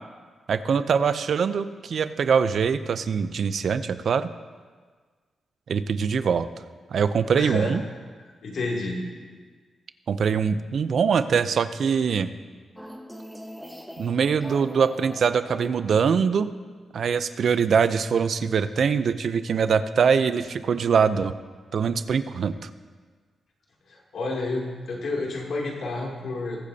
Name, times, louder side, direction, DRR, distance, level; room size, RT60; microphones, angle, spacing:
voice 1, 0.5-4.3 5.7-6.5 6.9-7.8 10.1-12.3 14.0-16.5 16.9-21.4 21.7-22.7, right 6 dB, 65° right, 12 dB, 0.5 m, -23 dB
voice 2, 7.3-7.8 8.4-9.0 24.1-26.6, left 2 dB, 75° left, -2 dB, 2.7 m, -29 dB
sound 1, 12.8-16.3, equal, ahead, 1.2 m, -42 dB
21.0 x 8.2 x 2.8 m, 1.5 s
cardioid pair, 85°, 0 cm